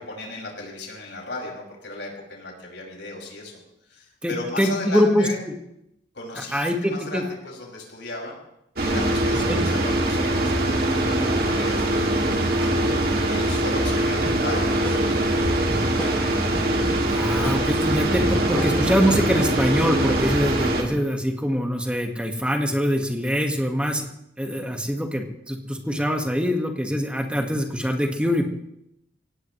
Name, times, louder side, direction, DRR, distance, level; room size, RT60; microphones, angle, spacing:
voice 1, 0.0-5.4 6.1-8.4 8.8-11.9 12.1-13.0 13.2-15.9, left 2 dB, 85° left, -2 dB, 6.0 m, -36 dB
voice 2, 4.2-5.5 6.5-7.2 9.5-9.6 17.1-24.1 24.4-28.5, equal, 5° right, 3 dB, 1.6 m, -24 dB
sound 1, 8.8-20.8, right 1 dB, 55° right, 2.5 m, -22 dB
sound 2, 14.3-19.4, equal, 10° left, 1.8 m, -34 dB
24.0 x 17.5 x 3.2 m, 0.79 s
head